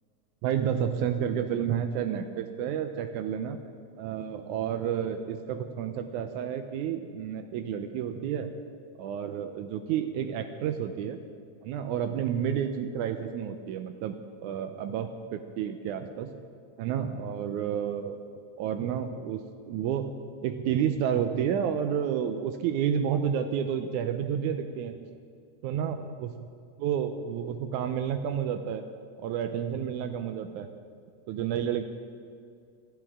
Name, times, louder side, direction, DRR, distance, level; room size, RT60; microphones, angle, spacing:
voice 1, 0.4-3.6 4.0-8.5 9.0-11.2 11.6-16.3 16.8-18.2 18.6-20.1 20.4-25.1 25.6-26.3 26.8-28.8 29.2-30.7 31.3-31.8, right 8 dB, 85° right, 7 dB, 2.1 m, -30 dB
23.5 x 13.5 x 3.6 m, 2.3 s
omnidirectional pair, 3.4 m